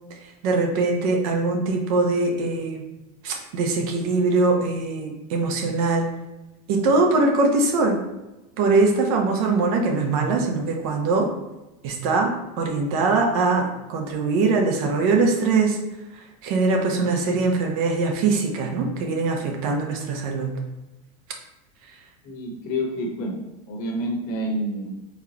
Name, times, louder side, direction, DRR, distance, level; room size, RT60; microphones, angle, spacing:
voice 1, 0.4-2.8 3.2-6.1 6.7-8.0 8.6-11.3 11.8-15.8 16.1-20.5, right 3 dB, 65° right, 2 dB, 0.9 m, -22 dB
voice 2, 22.2-25.1, equal, 50° left, 1 dB, 1.0 m, -29 dB
4.4 x 3.4 x 2.9 m, 0.99 s
supercardioid pair, 135°, 19 cm